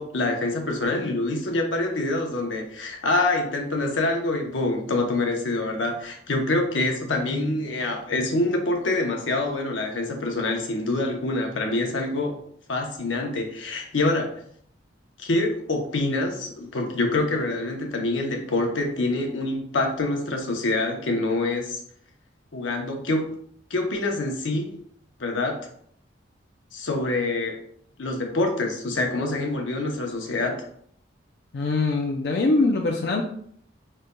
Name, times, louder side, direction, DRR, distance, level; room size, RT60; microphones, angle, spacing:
voice 1, 0.0-12.3 12.7-14.3 15.2-21.8 22.5-23.4 23.7-24.7 25.2-25.6 26.7-27.6 28.0-30.5, left 2 dB, 90° left, 2 dB, 0.8 m, -26 dB
voice 2, 31.5-33.2, left 3 dB, 60° left, 0 dB, 0.4 m, -22 dB
5.2 x 3.2 x 2.2 m, 0.65 s
head